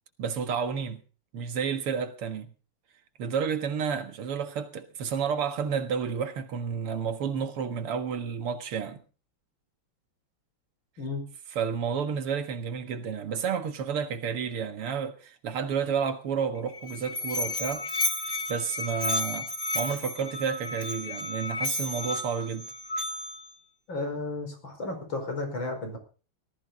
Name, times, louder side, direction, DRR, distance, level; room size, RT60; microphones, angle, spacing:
voice 1, 0.2-1.0 1.3-2.5 3.2-9.0 11.6-17.8 18.5-19.5 19.7-22.7, right 6 dB, 85° right, 2.5 m, -31 dB
Musical instrument, 16.6-23.5, left 1 dB, 25° left, 1.2 m, -32 dB
voice 2, 23.9-26.0, left 2 dB, 60° left, 5.6 m, -33 dB
18.5 x 14.0 x 4.0 m
omnidirectional pair, 2.4 m